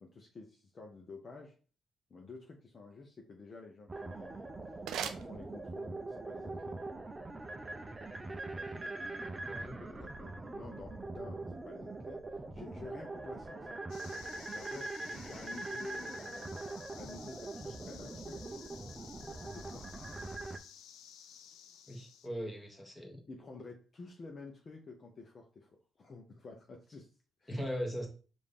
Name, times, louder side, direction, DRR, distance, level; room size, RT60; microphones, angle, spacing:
voice 1, 0.0-1.6 2.1-4.5 5.1-6.8 9.7-12.2 12.5-13.8 14.5-16.6 16.9-18.4 19.2-20.2 23.3-27.1 27.4-27.6, left 3 dB, 40° left, 0.7 m, -51 dB
sound 1, 3.9-20.6, right 2 dB, 20° right, 0.5 m, -42 dB
sound 2, 4.1-6.1, right 8 dB, 80° right, 0.4 m, -43 dB
voice 2, 9.5-9.8 21.9-23.2 27.5-28.1, equal, 10° left, 1.3 m, -39 dB
sound 3, 13.9-22.3, left 8 dB, 85° left, 0.4 m, -54 dB
4.9 x 2.6 x 3.6 m
cardioid pair, 90°, 0 cm